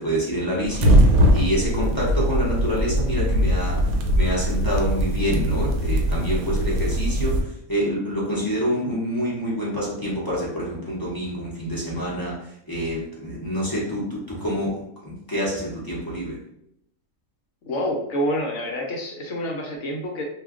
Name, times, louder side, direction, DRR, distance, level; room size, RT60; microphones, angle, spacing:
voice 1, 0.0-16.4, equal, 25° left, -7 dB, 0.4 m, -27 dB
sound 1, 0.6-7.4, equal, 90° right, 1.1 m, -21 dB
voice 2, 17.6-20.2, equal, 65° left, 1 dB, 0.9 m, -27 dB
2.4 x 2.2 x 3.5 m, 0.75 s
omnidirectional pair, 1.5 m